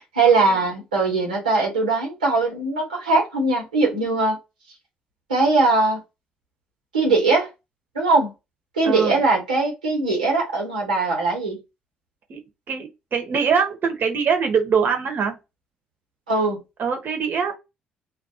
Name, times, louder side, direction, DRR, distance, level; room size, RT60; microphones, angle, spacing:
voice 1, 0.0-4.4 5.3-6.0 6.9-7.5 7.9-8.3 8.8-11.6 16.3-16.6, right 3 dB, 85° right, 1.0 m, -20 dB
voice 2, 8.8-9.2 12.3-12.4 12.7-15.4 16.8-17.5, right 6 dB, 50° right, 0.9 m, -23 dB
2.4 x 2.1 x 2.7 m
figure-of-eight pair, 45°, 4 cm